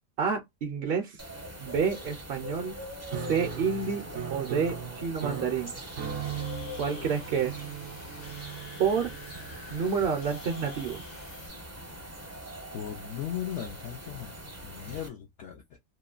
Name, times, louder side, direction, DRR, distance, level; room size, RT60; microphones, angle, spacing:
voice 1, 0.2-1.2 1.6-2.7 3.1-4.0 4.3-5.8 6.8-7.7 8.8-9.1 9.7-11.0, right 6 dB, 60° right, 0.6 m, -29 dB
sound 1, 1.2-15.1, equal, 20° right, 0.5 m, -42 dB
Piano, 3.1-9.9, right 9 dB, 75° right, 0.9 m, -39 dB
sound 2, 6.0-11.5, left 3 dB, 85° left, 1.2 m, -49 dB
voice 2, 12.7-14.3 14.6-15.8, left 10 dB, 65° left, 0.8 m, -37 dB
3.0 x 2.2 x 2.3 m
omnidirectional pair, 1.4 m